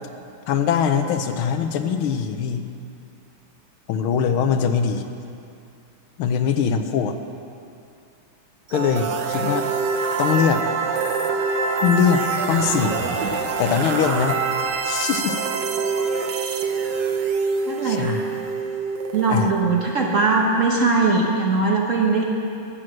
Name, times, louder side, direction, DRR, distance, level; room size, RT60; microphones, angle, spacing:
voice 1, 0.5-2.7 3.9-5.0 6.2-7.1 8.7-9.7 10.2-10.6 11.8-13.1 13.6-14.4 14.8-15.4 17.8-18.2 19.3-19.5, left 7 dB, 80° left, 7 dB, 1.5 m, -22 dB
sound 1, 8.7-20.5, right 5 dB, 65° right, 1.4 m, -25 dB
sound 2, 11.4-15.5 15.8-15.9, left 4 dB, 50° left, 4.2 m, -36 dB
voice 2, 17.7-18.2 19.1-22.2, right 3 dB, 45° right, -1 dB, 1.1 m, -20 dB
13.0 x 7.8 x 7.5 m, 2.5 s
omnidirectional pair, 2.4 m